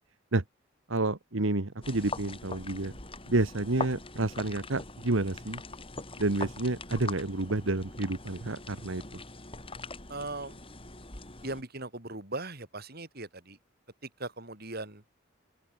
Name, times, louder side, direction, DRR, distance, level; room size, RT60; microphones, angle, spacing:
voice 1, 0.9-2.9 3.3-5.6 6.2-9.0, right 2 dB, 80° right, 1.5 m, -29 dB
sound 1, 1.8-11.6, left 3 dB, 25° left, 8.0 m, -42 dB
voice 2, 10.1-10.6 11.4-13.6 14.0-15.0, right 2 dB, 50° right, 6.6 m, -39 dB
open air
head